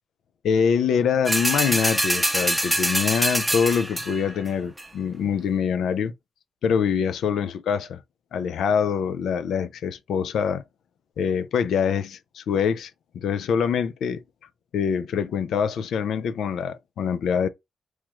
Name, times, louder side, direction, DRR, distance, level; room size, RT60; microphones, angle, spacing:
voice 1, 0.4-6.1 6.6-8.0 8.3-10.6 11.2-14.2 14.7-17.5, left 7 dB, 85° left, 0.3 m, -24 dB
sound 1, 1.3-4.3 4.8-4.9, right 1 dB, 5° right, 0.6 m, -24 dB
3.1 x 2.3 x 2.9 m
cardioid pair, 65°, 0 cm